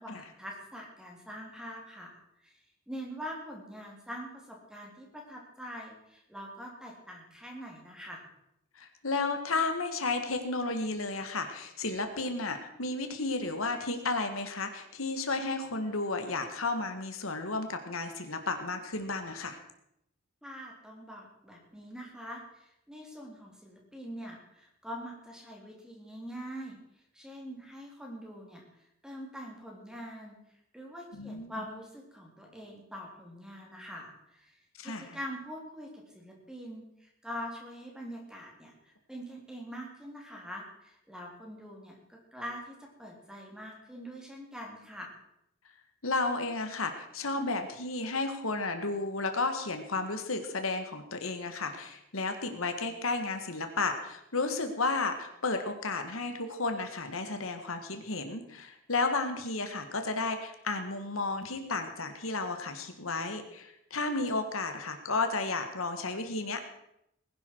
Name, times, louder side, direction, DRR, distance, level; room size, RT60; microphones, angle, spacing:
voice 1, 0.0-2.6 2.9-8.3 20.4-26.8 27.1-28.6 29.0-30.4 30.7-34.6 34.8-45.2, equal, 5° right, -1 dB, 3.3 m, -44 dB
voice 2, 8.8-19.6 31.1-31.6 34.8-35.1 46.0-66.7, left 3 dB, 80° left, 6 dB, 1.8 m, -33 dB
20.0 x 11.5 x 4.7 m, 0.79 s
head